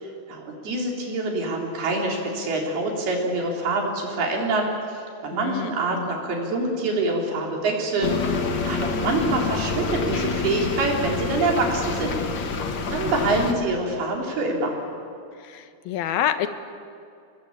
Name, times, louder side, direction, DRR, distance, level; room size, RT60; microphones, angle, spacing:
voice 1, 0.0-4.7 5.2-12.2 12.9-14.8, right 2 dB, 80° right, 0 dB, 5.8 m, -25 dB
voice 2, 5.3-6.1 12.9-13.4 15.4-16.5, left 10 dB, 75° left, 9 dB, 2.9 m, -28 dB
sound 1, 8.0-13.5, left 4 dB, 50° left, 1.4 m, -27 dB
29.0 x 20.5 x 8.8 m, 2.5 s
omnidirectional pair, 4.4 m